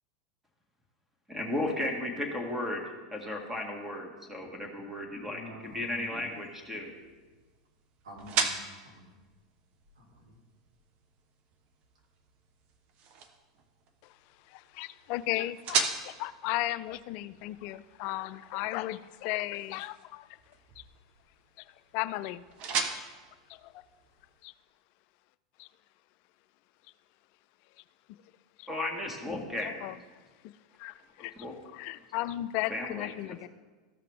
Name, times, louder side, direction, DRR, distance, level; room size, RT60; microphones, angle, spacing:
voice 1, 1.3-2.8 3.1-6.9 28.7-29.9 31.4-31.5 32.7-33.1, left 1 dB, 10° right, 3 dB, 1.7 m, -35 dB
voice 2, 5.3-6.1 8.0-9.2 10.0-10.4, equal, 75° right, -1 dB, 2.3 m, -49 dB
sound 1, 5.6-24.5, right 5 dB, 45° right, 0.9 m, -39 dB
voice 3, 14.5-20.3 20.8-20.9 21.6-22.4 22.9-23.0 23.5-23.8 24.4-24.5 25.6-25.7 28.6-28.7 29.6-30.0 30.4-30.5 30.8-31.3 31.7-33.5, left 16 dB, 50° left, 16 dB, 0.3 m, -35 dB
14.0 x 5.7 x 3.5 m, 1.3 s
hypercardioid pair, 90°, 3 cm